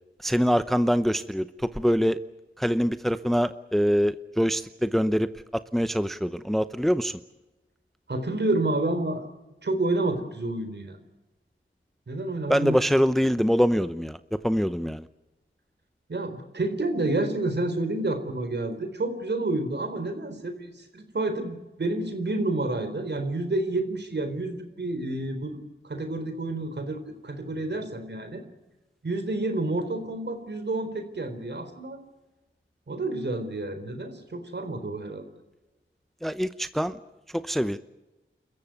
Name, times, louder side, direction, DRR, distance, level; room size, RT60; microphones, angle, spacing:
voice 1, 0.2-1.5 1.8-2.2 2.6-7.1 12.5-15.0 36.2-37.0 37.5-37.8, equal, ahead, 12 dB, 0.8 m, -24 dB
voice 2, 8.1-9.2 9.6-11.0 12.1-12.8 16.1-28.4 29.0-32.0 32.9-35.3, right 2 dB, 55° right, 8 dB, 4.2 m, -29 dB
29.0 x 14.5 x 9.5 m, 1.1 s
wide cardioid pair, 65°, 21 cm